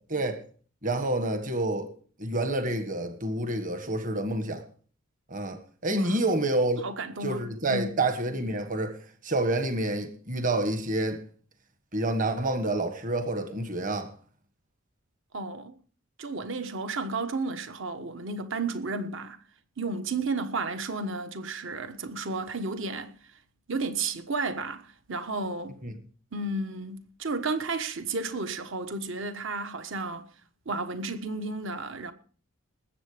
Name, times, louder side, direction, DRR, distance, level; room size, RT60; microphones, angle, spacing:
voice 1, 0.8-1.9 2.2-4.6 5.3-6.8 7.2-9.0 9.2-11.2 11.9-14.1 25.8-25.9, right 2 dB, 40° right, 1.6 m, -28 dB
voice 2, 5.9-6.2 6.8-7.9 15.3-15.8 16.2-19.4 19.8-23.2 23.7-25.8 26.3-30.3 30.6-32.1, right 3 dB, 65° right, 1.3 m, -32 dB
20.0 x 8.4 x 5.1 m
head